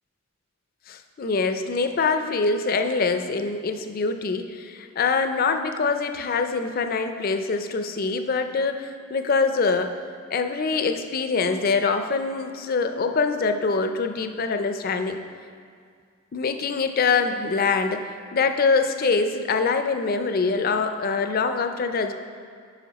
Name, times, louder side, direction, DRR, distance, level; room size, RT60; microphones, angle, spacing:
voice 1, 0.9-10.0 10.3-15.2 16.3-22.1, left 4 dB, 45° left, 7 dB, 0.4 m, -24 dB
9.2 x 5.4 x 4.1 m, 2.2 s
head